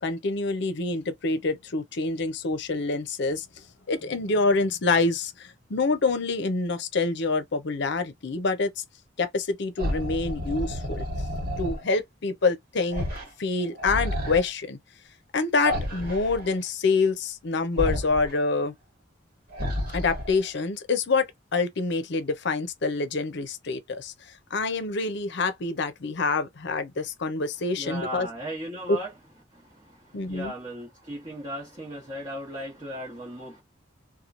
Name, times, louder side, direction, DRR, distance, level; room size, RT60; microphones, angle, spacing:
voice 1, 0.0-3.5 3.9-8.8 9.2-11.1 11.6-13.0 13.4-14.8 15.3-18.7 19.9-24.1 24.5-28.3 28.9-29.0 30.1-30.5, left 3 dB, 65° left, 0.6 m, -26 dB
sound 1, 9.8-11.8 12.9-13.3 13.6-14.4 15.6-16.5 17.8-18.3 19.5-20.4, equal, 50° right, 1.3 m, -30 dB
voice 2, 27.7-29.1 29.5-33.6, equal, 25° right, 1.0 m, -37 dB
3.0 x 2.2 x 2.5 m
head